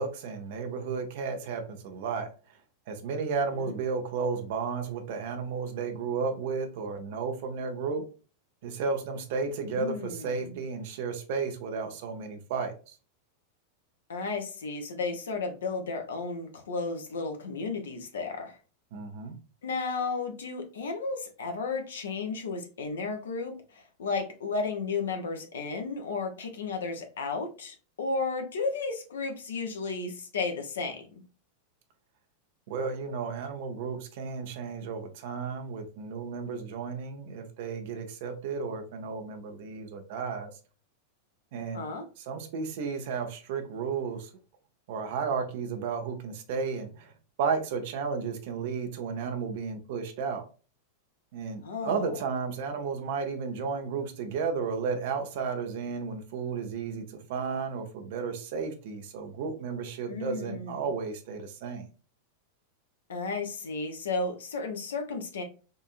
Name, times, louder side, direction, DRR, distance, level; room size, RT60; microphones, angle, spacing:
voice 1, 0.0-2.3 2.9-8.0 8.6-13.0 18.9-19.3 32.7-40.5 41.5-41.8 42.2-44.3 44.9-47.1 47.4-50.4 51.3-61.9, right 5 dB, 50° right, 6 dB, 0.7 m, -33 dB
voice 2, 9.7-10.5 14.1-18.6 19.6-31.2 41.7-42.0 51.6-52.2 60.1-60.8 63.1-65.4, left 4 dB, 65° left, 4 dB, 0.7 m, -33 dB
3.8 x 2.6 x 2.4 m, 0.36 s
figure-of-eight pair, 90°, 0 cm